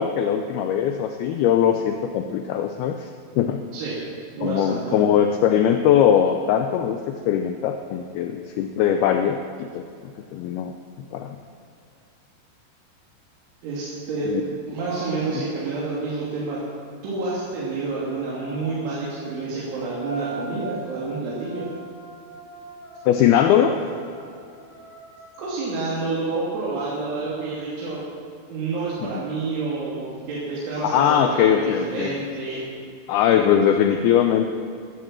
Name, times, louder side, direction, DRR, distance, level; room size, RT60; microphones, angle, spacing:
voice 1, 0.0-3.1 3.4-3.6 4.4-9.8 10.3-10.7 11.1-11.4 14.3-14.4 15.3-15.4 23.1-23.7 29.0-29.2 30.8-32.2 33.1-34.5, left 9 dB, 85° left, 6 dB, 2.2 m, -20 dB
voice 2, 4.4-5.0 13.6-14.3 14.7-16.6 17.0-21.6 23.6-23.7 25.4-28.0 28.5-32.6, right 3 dB, 85° right, -7 dB, 5.2 m, -28 dB
sound 1, 14.9-15.1 18.1-25.5, right 2 dB, 10° left, 5.0 m, -41 dB
13.5 x 13.5 x 7.6 m, 2.4 s
omnidirectional pair, 5.3 m